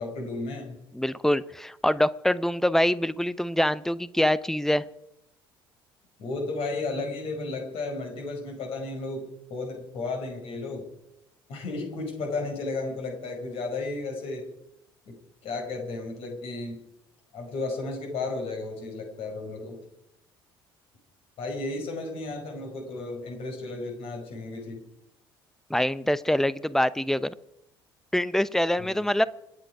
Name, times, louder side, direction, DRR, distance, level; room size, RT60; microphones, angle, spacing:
voice 1, 0.0-0.8 6.2-10.9 11.5-14.5 15.1-15.2 15.4-16.8 17.3-19.8 21.4-24.8 28.8-28.9, left 3 dB, 50° left, 2 dB, 5.2 m, -33 dB
voice 2, 0.9-4.8 25.7-27.3 28.1-29.2, left 1 dB, 5° left, 18 dB, 0.8 m, -24 dB
27.5 x 10.0 x 4.9 m, 0.83 s
figure-of-eight pair, 55°, 12 cm